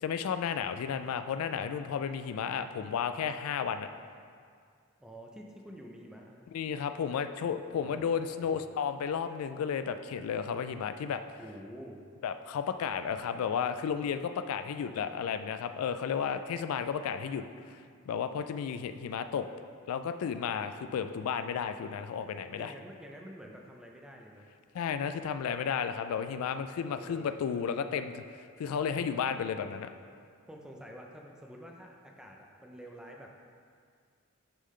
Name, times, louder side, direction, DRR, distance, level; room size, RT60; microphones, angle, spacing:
voice 1, 0.0-3.9 6.5-11.2 12.2-17.8 18.1-19.5 19.9-22.7 24.7-28.2 28.6-29.9, left 7 dB, 90° left, 11 dB, 0.3 m, -33 dB
voice 2, 5.0-6.4 7.8-8.6 11.4-12.0 22.5-24.5 26.8-27.4 29.0-29.1 30.5-33.3, equal, 5° right, 0 dB, 0.5 m, -48 dB
9.9 x 3.7 x 3.2 m, 2.2 s
head